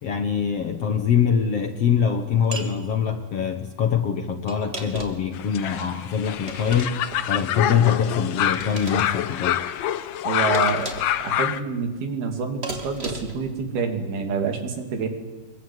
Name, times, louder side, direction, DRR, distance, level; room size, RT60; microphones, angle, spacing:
voice 1, 0.0-7.0 7.3-9.6, left 7 dB, 60° left, 8 dB, 1.7 m, -23 dB
sound 1, 2.5-2.7 4.5-5.3 6.4-7.2 8.5-9.1 10.5-11.2 12.6-13.4, right 2 dB, 15° right, 2.9 m, -35 dB
sound 2, 5.3-11.6, left 11 dB, 75° left, 1.6 m, -26 dB
voice 2, 10.2-10.9 11.2-15.1, right 5 dB, 85° right, 6 dB, 5.0 m, -27 dB
25.5 x 22.5 x 9.7 m, 1.3 s
omnidirectional pair, 4.3 m